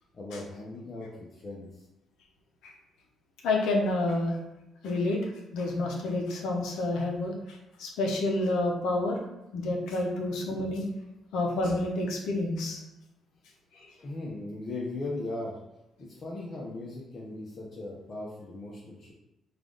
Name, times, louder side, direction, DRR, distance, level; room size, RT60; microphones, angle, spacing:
voice 1, 0.1-1.9 14.0-15.6 16.0-19.1, left 2 dB, 45° left, -4 dB, 0.7 m, -38 dB
voice 2, 3.4-4.4 4.8-9.2 9.5-10.9 11.3-12.8 13.7-13.9, left 2 dB, 85° left, 0 dB, 0.6 m, -29 dB
3.3 x 2.4 x 3.8 m, 0.92 s
cardioid pair, 90°, 0 cm